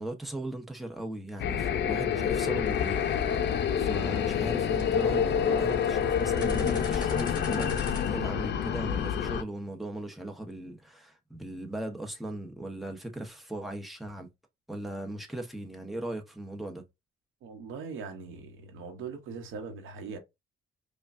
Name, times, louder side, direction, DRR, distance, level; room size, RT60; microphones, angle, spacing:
voice 1, 0.0-3.0 3.3-7.8 8.0-14.3 14.7-16.8, right 1 dB, ahead, 1.0 m, -38 dB
sound 1, 1.4-9.4, left 8 dB, 60° left, 0.6 m, -28 dB
sound 2, 2.6-8.1, left 3 dB, 20° left, 2.5 m, -42 dB
voice 2, 17.4-20.2, right 5 dB, 85° right, 1.1 m, -40 dB
5.0 x 2.3 x 2.6 m
cardioid pair, 90°, 20 cm